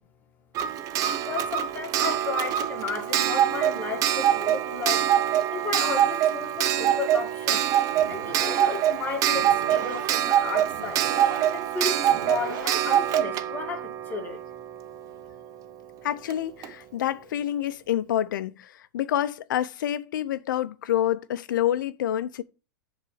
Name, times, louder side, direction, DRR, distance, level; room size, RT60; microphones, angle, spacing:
Clock, 0.5-15.1 16.3-16.4 16.6-16.7, right 11 dB, 35° right, 0.6 m, -25 dB
voice 1, 1.2-7.7 8.1-11.0 11.5-14.4, left 5 dB, 15° left, 2.1 m, -34 dB
sound 1, 7.9-13.6, right 4 dB, 80° right, 2.2 m, -40 dB
voice 2, 16.0-22.4, left 11 dB, 80° left, 0.7 m, -27 dB
7.5 x 4.0 x 6.4 m
hypercardioid pair, 135°, 10 cm